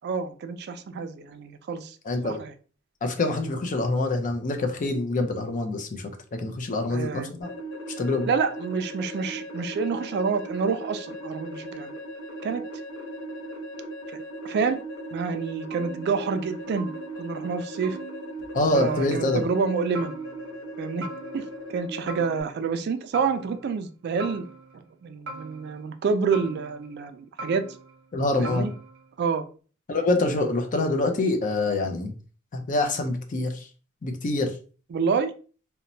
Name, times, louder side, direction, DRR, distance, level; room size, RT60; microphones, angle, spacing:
voice 1, 0.0-2.0 2.2-2.5 6.9-7.3 8.3-11.9 12.4-12.6 14.4-14.8 15.1-16.9 17.2-18.0 18.7-20.1 20.8-21.1 21.3-24.5 24.7-27.6 28.4-28.7 29.2-29.5 34.9-35.3, right 5 dB, 55° right, 0.3 m, -28 dB
voice 2, 2.1-2.4 3.0-7.5 8.0-8.3 18.5-19.4 28.1-28.7 29.9-32.1 32.5-33.7 34.0-34.5, left 2 dB, 40° left, 0.5 m, -25 dB
sound 1, 7.4-22.4, right 1 dB, 80° left, 0.7 m, -38 dB
sound 2, 15.7-16.5 16.8-17.4 17.8-18.6 18.9-19.5 19.9-20.7 21.0-21.7 22.1-22.8 23.1-23.9 24.2-24.9 25.3-26.0 26.3-27.1 27.4-28.1 28.4-29.2, right 3 dB, 70° right, 0.8 m, -42 dB
2.9 x 2.1 x 2.6 m
head